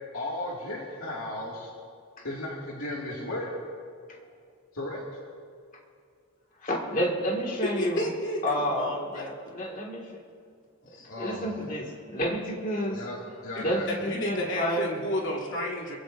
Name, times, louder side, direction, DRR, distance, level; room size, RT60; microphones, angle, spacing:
voice 1, 0.1-1.7 2.2-3.6 4.7-5.0 11.1-11.5 12.9-13.2 13.4-13.9, left 1 dB, 75° left, -4 dB, 2.3 m, -35 dB
voice 2, 6.6-8.1 8.4-10.2 10.9-13.0 13.6-14.9, equal, 35° left, 0 dB, 2.2 m, -30 dB
voice 3, 7.8-9.2 10.8-11.1 12.9-13.1 13.9-16.0, left 1 dB, 55° left, -3 dB, 3.0 m, -32 dB
26.5 x 15.5 x 2.7 m, 2.2 s
head